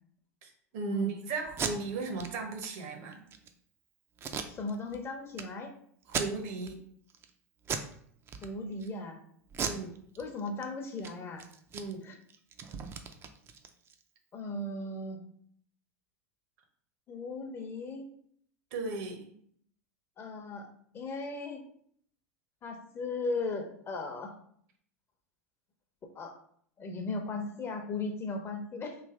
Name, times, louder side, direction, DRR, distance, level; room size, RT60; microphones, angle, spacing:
voice 1, 0.4-3.2 6.1-6.8 9.6-9.9 11.7-12.0 18.7-19.3, right 4 dB, 60° right, 4 dB, 0.8 m, -36 dB
Packing tape duct tape, 1.5-1.7 2.2-2.3 2.6-2.7 3.1-3.5 4.2-5.0 5.3-5.4 6.0-6.7 7.1-7.3 7.6-7.9 8.3-8.9 9.5-10.6 10.9-11.1 11.4-14.0, right 6 dB, 30° right, 0.4 m, -37 dB
voice 2, 4.5-5.7 8.4-9.2 10.2-11.4 12.0-12.2 14.3-15.2 17.1-18.1 20.2-20.7 20.9-21.6 22.6-24.3 26.1-26.3 26.8-29.0, left 3 dB, 30° left, 4 dB, 0.8 m, -37 dB
3.3 x 2.6 x 3.6 m, 0.64 s
hypercardioid pair, 90°, 8 cm